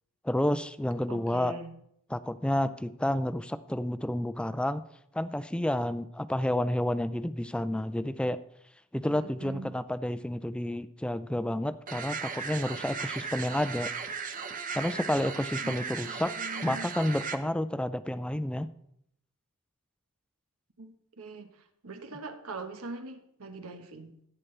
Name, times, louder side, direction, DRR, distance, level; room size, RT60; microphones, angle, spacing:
voice 1, 0.2-1.6 2.1-4.8 5.1-8.4 8.9-13.9 14.7-16.3 16.6-18.7, left 1 dB, 5° left, 14 dB, 0.3 m, -30 dB
voice 2, 1.1-1.7 9.1-9.7 15.6-16.9 20.8-21.5 21.8-24.1, right 2 dB, 90° right, 6 dB, 1.3 m, -42 dB
sound 1, 11.9-17.4, right 5 dB, 40° right, 0.8 m, -36 dB
15.0 x 8.7 x 3.3 m, 0.74 s
head